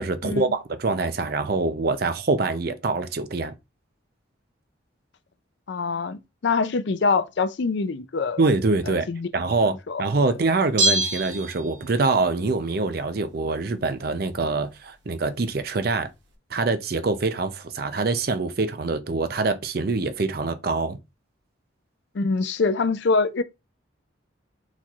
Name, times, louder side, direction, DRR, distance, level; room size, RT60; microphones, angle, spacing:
voice 1, 0.0-3.5 8.4-9.1 9.3-16.1 16.5-21.0, right 3 dB, 50° right, 0.5 m, -25 dB
voice 2, 5.7-8.4 8.9-9.3 9.9-10.0 22.1-23.4, left 4 dB, 60° left, 0.4 m, -24 dB
Bell, 10.8-12.2 12.5-12.6, right 1 dB, 70° right, 1.0 m, -25 dB
4.4 x 4.1 x 2.4 m
head